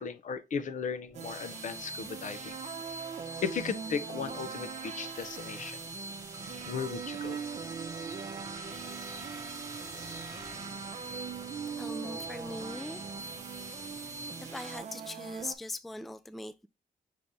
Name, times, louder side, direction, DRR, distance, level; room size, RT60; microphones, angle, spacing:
voice 1, 0.0-2.6 3.4-5.8 6.7-7.4, left 6 dB, 60° left, 0.6 m, -36 dB
sound 1, 1.1-14.8, right 1 dB, 20° right, 1.0 m, -44 dB
sound 2, 1.1-15.6, right 7 dB, 50° right, 0.7 m, -42 dB
sound 3, 6.4-14.4, right 4 dB, 70° right, 1.0 m, -55 dB
voice 2, 11.8-13.0 13.5-13.6 14.4-16.7, left 2 dB, ahead, 0.3 m, -41 dB
5.7 x 2.6 x 3.3 m
cardioid pair, 65°, 15 cm